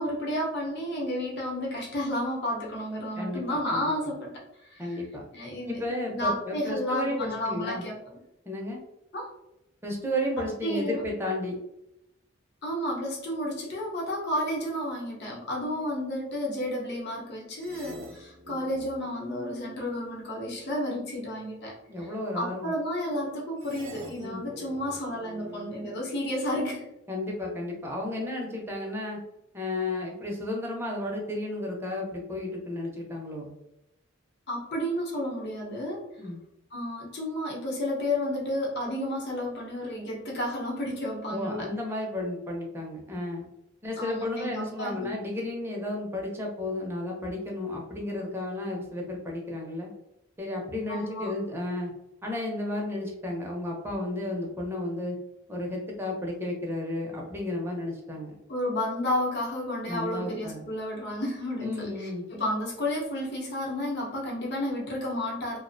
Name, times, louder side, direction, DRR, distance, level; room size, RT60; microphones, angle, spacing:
voice 1, 0.0-5.0 5.3-5.8 6.1-8.1 9.1-9.3 10.4-11.0 12.6-22.1 22.3-26.9 34.5-36.1 36.7-41.7 44.0-45.1 50.9-51.3 58.5-65.6, left 1 dB, 60° left, -3 dB, 0.8 m, -32 dB
voice 2, 3.2-4.1 4.8-5.2 5.7-7.8 8.5-8.8 9.8-11.5 21.9-22.7 24.2-24.4 27.1-29.2 29.5-33.5 36.2-36.4 41.3-43.5 43.8-49.9 50.4-51.9 52.2-55.2 55.5-58.3 59.9-60.7 61.6-62.3, left 1 dB, 10° right, -1 dB, 0.5 m, -33 dB
sound 1, 17.6-20.8 23.6-26.8, right 2 dB, 80° right, 0.5 m, -46 dB
2.4 x 2.1 x 2.5 m, 0.85 s
head